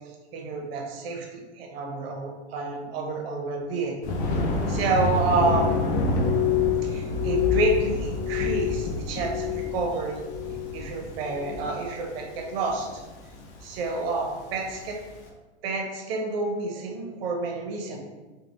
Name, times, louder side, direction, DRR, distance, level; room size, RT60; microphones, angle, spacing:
voice 1, 0.3-3.9 4.7-6.1 6.8-9.5 9.7-10.2 10.7-13.0 13.6-15.0 15.6-18.0, right 3 dB, 55° right, 1 dB, 0.7 m, -29 dB
Thunder, 4.0-15.1, left 1 dB, 40° left, 0.5 m, -29 dB
Glass, 5.3-9.9 10.1-10.8 11.2-11.7 12.3-12.6, left 20 dB, 85° left, 0.6 m, -29 dB
3.3 x 2.3 x 2.5 m, 1.2 s
hypercardioid pair, 115°, 35 cm